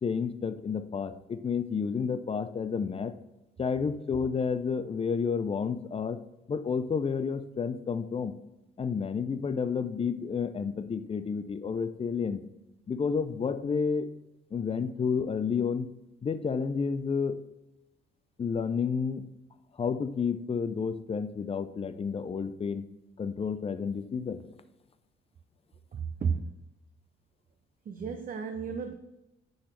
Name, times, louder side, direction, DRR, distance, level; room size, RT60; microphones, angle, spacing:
voice 1, 0.0-3.2 3.6-6.2 6.5-8.3 8.8-12.4 12.9-14.1 14.5-15.9 16.2-17.4 18.4-19.2 19.8-22.8 23.2-24.5, left 6 dB, 30° left, 12 dB, 0.5 m, -30 dB
voice 2, 25.9-26.6 27.9-28.9, right 6 dB, 45° right, 6 dB, 0.6 m, -33 dB
10.0 x 4.0 x 3.3 m, 0.97 s
cardioid pair, 90°, 20 cm